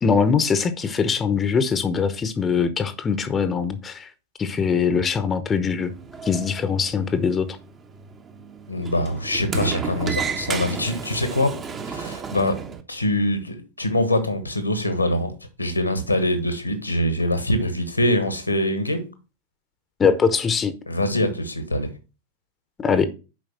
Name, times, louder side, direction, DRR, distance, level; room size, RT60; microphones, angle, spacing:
voice 1, 0.0-4.1 4.4-5.9 6.2-7.6 20.0-20.8 22.8-23.1, left 6 dB, 20° left, 0.9 m, -22 dB
Sliding door, 5.8-12.8, right 6 dB, 25° right, 1.0 m, -33 dB
voice 2, 8.7-11.6 11.8-12.6 12.9-19.0 20.9-21.9, left 1 dB, 85° left, 1.6 m, -24 dB
7.2 x 5.1 x 6.0 m
figure-of-eight pair, 90°, 0 cm